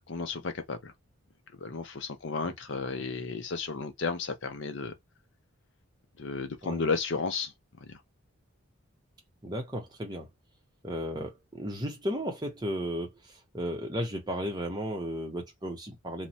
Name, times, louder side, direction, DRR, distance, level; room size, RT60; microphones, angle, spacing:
voice 1, 0.1-0.9 1.6-4.9 6.2-7.5 7.8-8.0, left 4 dB, 55° left, 0.5 m, -33 dB
voice 2, 9.4-10.3 10.8-16.3, equal, 20° right, 0.7 m, -34 dB
3.0 x 2.1 x 2.7 m
head